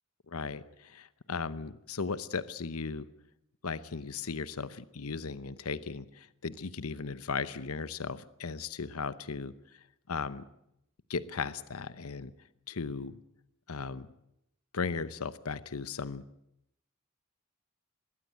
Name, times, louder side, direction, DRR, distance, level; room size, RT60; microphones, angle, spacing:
voice 1, 0.3-3.1 3.6-9.5 10.1-10.4 11.1-12.3 12.7-13.2 13.7-14.1 14.7-16.2, left 5 dB, 85° left, 15 dB, 0.9 m, -36 dB
22.0 x 16.0 x 9.2 m, 0.81 s
head